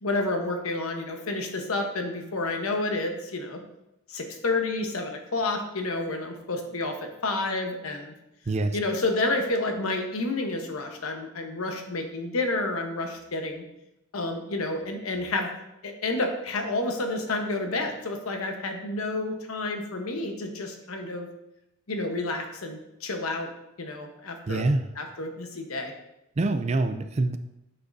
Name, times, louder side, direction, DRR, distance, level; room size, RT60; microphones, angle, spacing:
voice 1, 0.0-3.6 4.1-8.1 8.7-13.6 14.1-15.5 15.8-21.3 21.9-23.5 23.8-24.7 25.0-25.9, left 2 dB, 85° left, 4 dB, 1.0 m, -30 dB
voice 2, 8.5-8.8 24.5-24.9 26.4-27.4, right 2 dB, 30° right, 9 dB, 0.4 m, -25 dB
7.8 x 6.3 x 2.6 m, 0.88 s
head